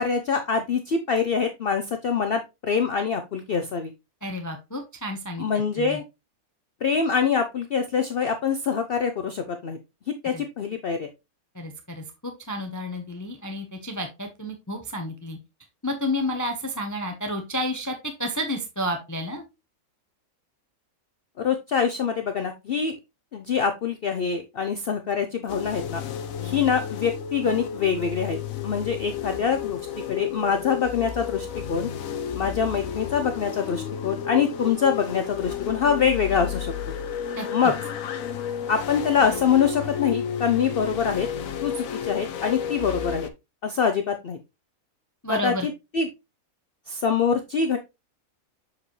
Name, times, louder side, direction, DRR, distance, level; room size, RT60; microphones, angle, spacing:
voice 1, 0.0-3.9 5.4-6.0 6.8-9.8 10.2-11.1 21.4-22.9 23.3-26.0 26.4-28.4 28.6-29.8 30.1-31.9 32.3-36.7 37.5-37.7 38.7-41.3 41.6-43.3 43.6-44.4 45.3-46.1 46.9-47.8, left 6 dB, 55° left, 7 dB, 0.7 m, -24 dB
voice 2, 4.2-5.5 5.8-6.0 10.3-10.4 11.5-15.4 15.8-19.4 37.3-37.7 45.2-45.7, left 1 dB, 15° left, 4 dB, 0.7 m, -31 dB
sound 1, 25.5-43.3, left 8 dB, 70° left, 1.1 m, -32 dB
6.8 x 4.9 x 3.1 m, 0.24 s
omnidirectional pair, 1.5 m